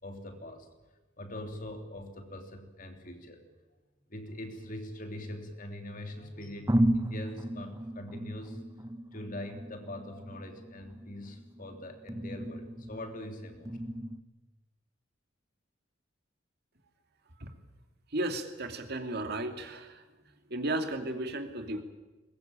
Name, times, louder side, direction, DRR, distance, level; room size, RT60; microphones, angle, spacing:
voice 1, 0.0-0.7 1.2-3.4 4.1-8.6 9.1-13.8, left 1 dB, 40° left, 5 dB, 3.2 m, -42 dB
sound 1, 4.3-5.6 6.2-6.3 6.7-14.2, right 1 dB, 15° right, 0.9 m, -35 dB
voice 2, 18.1-20.0 20.5-21.8, right 1 dB, 50° right, 6 dB, 2.5 m, -34 dB
22.0 x 21.0 x 8.9 m, 1.2 s
head